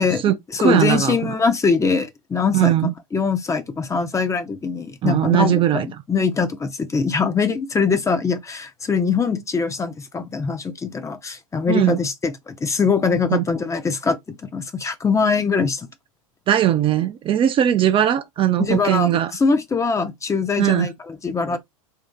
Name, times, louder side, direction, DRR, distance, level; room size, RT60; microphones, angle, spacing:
voice 1, 0.0-1.3 2.5-2.9 5.0-5.9 11.7-12.0 13.3-13.4 16.5-19.3 20.6-20.9, right 11 dB, 30° right, 0.4 m, -19 dB
voice 2, 0.5-2.7 3.1-15.9 18.6-21.6, left 5 dB, 15° left, 0.6 m, -22 dB
2.7 x 2.7 x 3.6 m
hypercardioid pair, 95°, 18 cm